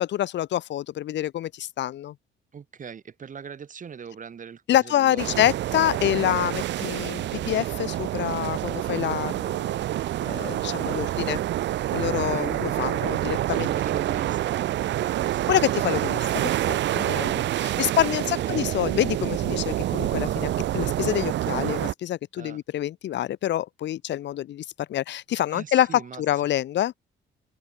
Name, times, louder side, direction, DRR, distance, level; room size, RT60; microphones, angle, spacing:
voice 1, 0.0-2.1 4.7-9.8 10.2-11.4 11.9-13.7 15.5-26.9, left 12 dB, 65° left, 0.6 m, -27 dB
voice 2, 2.5-5.4 12.0-12.5 13.5-15.6 18.2-18.6 22.4-22.6 25.5-26.2, right 7 dB, 40° right, 1.4 m, -40 dB
sound 1, 5.2-21.9, right 13 dB, 65° right, 0.5 m, -27 dB
cardioid pair, 90°, 20 cm